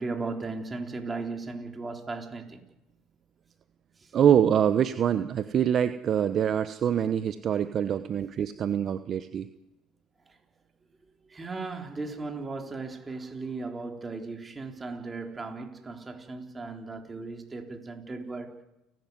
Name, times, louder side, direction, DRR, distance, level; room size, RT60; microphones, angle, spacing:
voice 1, 0.0-2.6 11.3-18.5, right 3 dB, 25° right, 3.8 m, -36 dB
voice 2, 4.1-9.5, right 9 dB, 50° right, 1.0 m, -25 dB
29.5 x 12.5 x 9.6 m
supercardioid pair, 80°, 0 cm